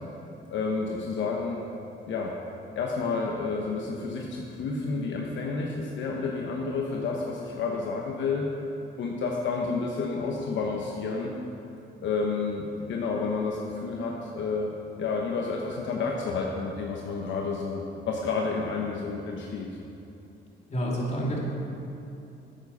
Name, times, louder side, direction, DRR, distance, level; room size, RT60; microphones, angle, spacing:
voice 1, 0.5-1.6 2.1-2.3 2.8-8.5 9.0-11.3 12.0-19.7, left 4 dB, 70° left, -1 dB, 1.0 m, -30 dB
voice 2, 20.7-21.4, equal, 35° left, -4 dB, 2.7 m, -28 dB
9.3 x 8.5 x 5.5 m, 2.8 s
cardioid pair, 90°, 20 cm